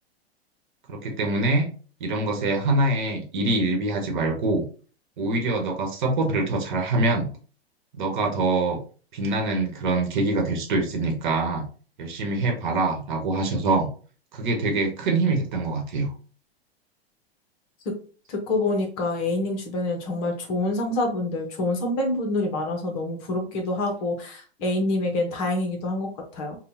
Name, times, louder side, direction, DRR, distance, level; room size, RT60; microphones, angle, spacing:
voice 1, 0.9-1.7 2.0-4.6 5.2-7.3 7.9-8.8 9.1-11.7 12.0-13.9 14.3-16.1, right 2 dB, 50° right, 3 dB, 1.1 m, -24 dB
voice 2, 18.3-26.6, left 2 dB, 35° left, 3 dB, 1.0 m, -26 dB
5.3 x 2.4 x 2.8 m, 0.40 s
figure-of-eight pair, 105°, 32 cm